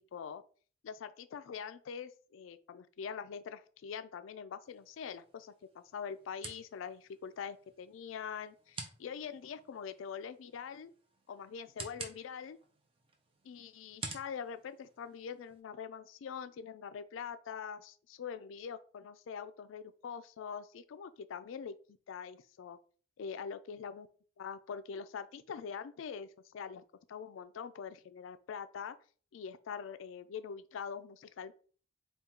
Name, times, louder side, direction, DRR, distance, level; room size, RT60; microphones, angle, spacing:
voice 1, 0.1-0.4 0.8-10.9 11.3-12.6 13.4-21.7 22.1-22.8 23.2-24.1 24.4-26.8 27.1-29.0 29.3-31.5, left 6 dB, 80° left, 0.3 m, -44 dB
sound 1, 4.6-15.6, right 3 dB, 30° right, 0.6 m, -51 dB
3.7 x 2.3 x 4.3 m
head